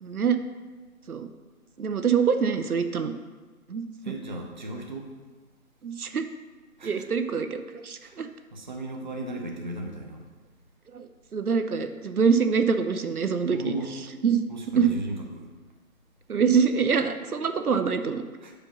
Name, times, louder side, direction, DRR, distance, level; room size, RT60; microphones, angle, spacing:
voice 1, 0.0-0.4 1.1-1.3 1.8-3.1 3.7-3.8 5.8-6.2 6.8-8.3 10.9-13.7 14.2-14.4 14.7-14.9 16.3-18.2, right 6 dB, 75° right, 8 dB, 0.7 m, -25 dB
voice 2, 4.0-5.1 6.8-7.1 8.0-8.2 8.5-10.2 13.5-13.9 14.5-15.5 18.4-18.5, right 2 dB, 30° right, 2 dB, 0.6 m, -36 dB
5.6 x 5.1 x 6.0 m, 1.4 s
figure-of-eight pair, 150°, 44 cm